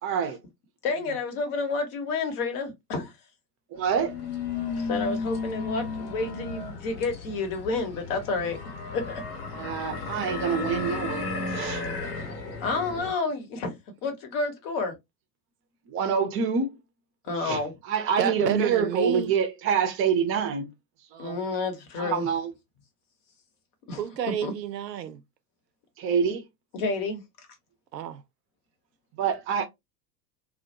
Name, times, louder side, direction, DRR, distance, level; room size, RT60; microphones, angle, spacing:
voice 1, 0.0-0.4 3.7-4.2 9.5-11.8 12.3-12.4 15.9-16.8 17.4-20.7 21.1-21.4 22.0-22.5 26.0-26.5 29.1-29.7, right 7 dB, 25° right, 0.5 m, -26 dB
voice 2, 0.8-3.1 4.7-9.2 12.6-13.7 14.0-14.9 17.3-17.7 21.2-22.3 23.9-24.0 24.4-24.5 26.7-27.2, left 3 dB, 45° left, 0.9 m, -30 dB
sound 1, 3.8-13.1, left 4 dB, 70° left, 0.9 m, -34 dB
voice 3, 18.2-19.3 24.0-25.2 27.9-28.2, right 9 dB, 80° right, 0.5 m, -30 dB
2.1 x 2.0 x 2.8 m
figure-of-eight pair, 75°, 49 cm